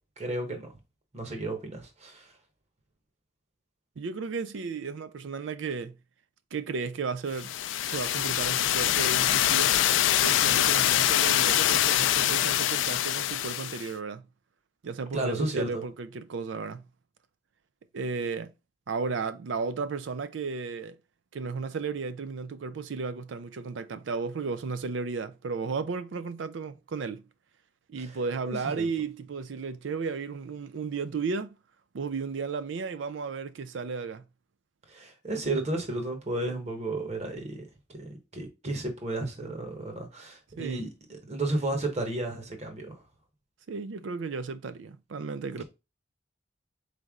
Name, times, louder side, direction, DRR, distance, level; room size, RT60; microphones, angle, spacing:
voice 1, 0.2-0.7 1.1-2.3 15.1-15.8 28.4-28.9 34.9-37.6 37.9-42.9, right 2 dB, 35° right, 1.1 m, -33 dB
voice 2, 4.0-6.0 6.5-7.6 7.9-9.8 10.2-14.3 14.8-16.9 17.9-18.5 18.9-21.0 21.3-27.2 27.9-31.6 31.9-34.3 40.6-40.8 43.7-45.6, right 4 dB, 85° right, 0.4 m, -34 dB
sound 1, 7.4-13.9, left 12 dB, 90° left, 0.3 m, -24 dB
4.1 x 3.3 x 3.6 m
head